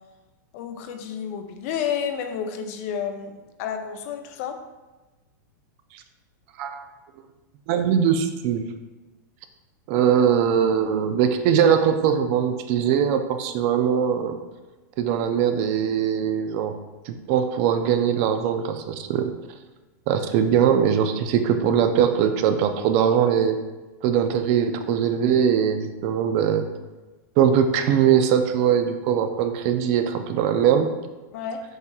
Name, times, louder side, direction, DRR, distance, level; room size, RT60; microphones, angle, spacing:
voice 1, 0.5-4.6 31.3-31.6, left 8 dB, 50° left, 6 dB, 0.5 m, -30 dB
voice 2, 7.7-8.6 9.9-14.4 15.0-16.7 17.1-19.3 20.1-23.6 24.0-26.7 27.4-30.9, right 8 dB, 45° right, 8 dB, 0.4 m, -21 dB
7.8 x 2.9 x 2.3 m, 1.2 s
supercardioid pair, 145°, 10 cm